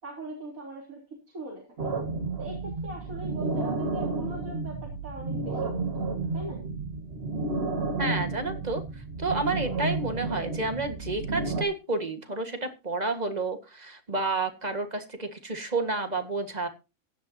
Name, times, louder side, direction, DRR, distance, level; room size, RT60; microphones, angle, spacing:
voice 1, 0.0-2.0 2.4-6.6, right 2 dB, 90° right, -1 dB, 3.9 m, -41 dB
sound 1, 1.8-11.6, right 3 dB, 45° right, 2.1 m, -31 dB
voice 2, 8.0-8.8 9.2-16.7, right 3 dB, 30° right, 7 dB, 1.8 m, -30 dB
16.5 x 11.0 x 2.8 m, 0.28 s
omnidirectional pair, 1.4 m